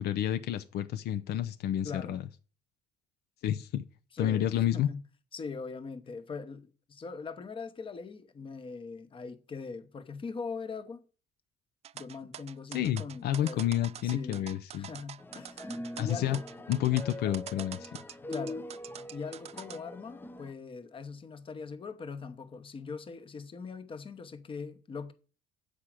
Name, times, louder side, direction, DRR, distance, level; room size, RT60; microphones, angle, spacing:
voice 1, 0.0-2.2 3.4-3.8 4.2-4.9 12.7-14.9 16.0-16.4 16.7-17.9, left 11 dB, 70° left, 0.6 m, -30 dB
voice 2, 1.8-2.2 4.1-5.0 5.3-11.0 11.9-13.6 14.0-14.5 14.8-16.4 18.3-18.6 19.1-25.1, left 5 dB, 30° left, 1.0 m, -41 dB
sound 1, 11.8-19.8, right 10 dB, 40° right, 0.4 m, -45 dB
sound 2, 15.2-20.5, left 1 dB, 10° left, 0.6 m, -43 dB
8.3 x 4.9 x 7.4 m
cardioid pair, 110°, 17 cm